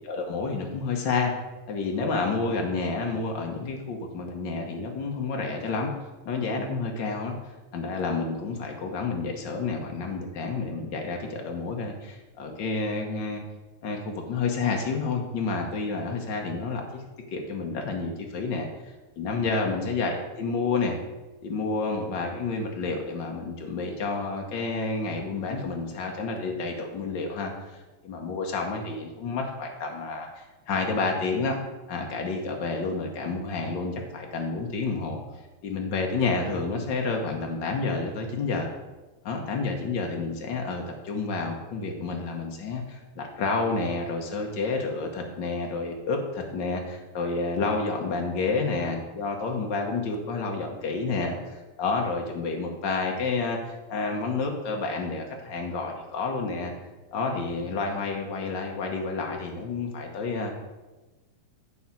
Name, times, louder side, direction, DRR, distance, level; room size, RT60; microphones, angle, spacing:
voice 1, 0.0-1.3 1.7-5.9 6.2-7.3 7.7-13.4 13.8-17.0 17.3-18.7 19.2-21.0 21.4-27.7 28.0-31.6 31.9-35.2 35.6-38.7 39.2-56.7 57.1-60.5, left 4 dB, 85° left, 1 dB, 0.9 m, -29 dB
8.5 x 4.9 x 7.3 m, 1.1 s
omnidirectional pair, 3.6 m